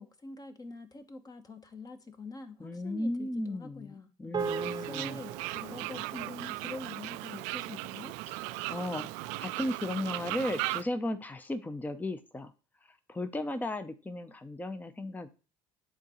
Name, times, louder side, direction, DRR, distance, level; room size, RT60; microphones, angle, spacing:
voice 1, 0.0-4.1 4.6-8.2, left 3 dB, 30° left, 1.1 m, -45 dB
voice 2, 2.6-5.2 8.7-9.1 9.4-12.5 13.1-15.3, left 1 dB, 15° left, 0.7 m, -35 dB
sound 1, 4.3-8.9, right 6 dB, 30° right, 0.8 m, -41 dB
Fowl, 4.4-10.8, right 19 dB, 70° right, 0.4 m, -37 dB
10.5 x 3.8 x 3.1 m
hypercardioid pair, 65°, 13 cm